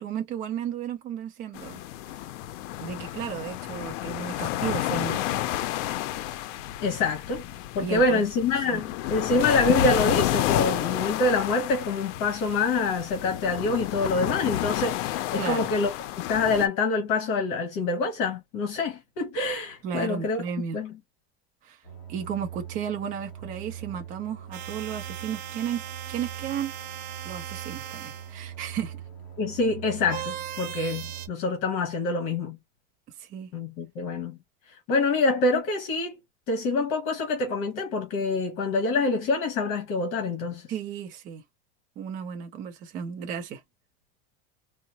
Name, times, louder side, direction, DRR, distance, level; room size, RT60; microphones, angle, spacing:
voice 1, 0.0-2.2 2.8-5.4 7.8-8.2 8.7-8.8 15.4-15.7 19.8-20.8 21.6-21.8 22.1-25.8 26.1-26.7 27.2-29.0 33.2-33.5 40.7-41.4 42.0-43.6, right 8 dB, 25° right, 0.4 m, -34 dB
sound 1, 1.5-16.7, left 13 dB, 85° left, 0.5 m, -30 dB
voice 2, 6.8-7.4 7.7-15.9 16.3-20.4 20.7-20.9 29.4-32.6 33.5-34.4 34.9-36.2 36.5-40.6, left 3 dB, 55° left, 1.1 m, -26 dB
sound 2, 21.8-31.3, right 9 dB, 30° left, 2.1 m, -42 dB
sound 3, 24.5-28.4 30.1-31.3, right 11 dB, 85° right, 0.7 m, -39 dB
3.6 x 2.0 x 2.7 m
cardioid pair, 170°, 36 cm